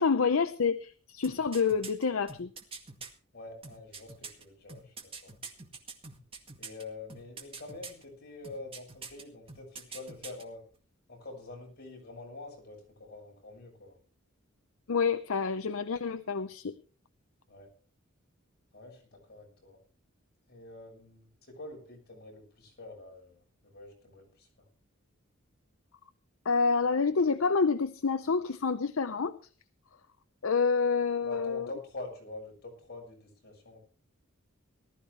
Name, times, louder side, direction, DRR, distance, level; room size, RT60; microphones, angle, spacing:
voice 1, 0.0-2.5 14.9-16.8 26.4-29.3 30.4-31.7, left 5 dB, 70° left, 11 dB, 0.7 m, -28 dB
sound 1, 1.2-3.1 3.6-6.8 7.1-8.0 8.4-9.2 9.5-10.4 10.7-10.8, right 4 dB, 25° right, 2.1 m, -44 dB
voice 2, 3.3-5.3 6.6-10.6 11.1-14.0 17.5-17.7 18.7-19.8 20.5-24.7 31.2-33.8, left 2 dB, 50° left, 0 dB, 6.7 m, -46 dB
19.0 x 13.5 x 3.3 m, 0.39 s
head